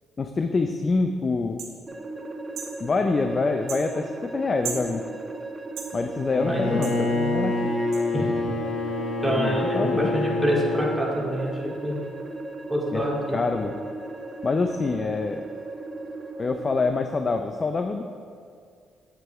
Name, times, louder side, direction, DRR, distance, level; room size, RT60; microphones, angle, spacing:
voice 1, 0.2-1.6 2.8-5.0 5.9-7.7 9.3-10.1 12.9-13.0 13.3-13.8 14.4-15.4 16.4-18.0, left 3 dB, 35° left, 6 dB, 0.5 m, -26 dB
sound 1, 1.6-1.7 2.5-2.7 3.7-3.8 4.6-4.9 5.8-5.9 6.8-7.0 7.9-8.0, right 6 dB, 80° right, 1.4 m, -34 dB
sound 2, 1.9-16.9, right 2 dB, 20° right, 1.1 m, -37 dB
Bowed string instrument, 6.3-11.1, left 2 dB, 55° left, 1.1 m, -27 dB
voice 2, 6.4-6.9 8.1-8.3 9.2-12.0 12.7-13.4, equal, ahead, -4 dB, 2.2 m, -26 dB
8.2 x 8.0 x 4.6 m, 2.2 s
cardioid pair, 90°, 0 cm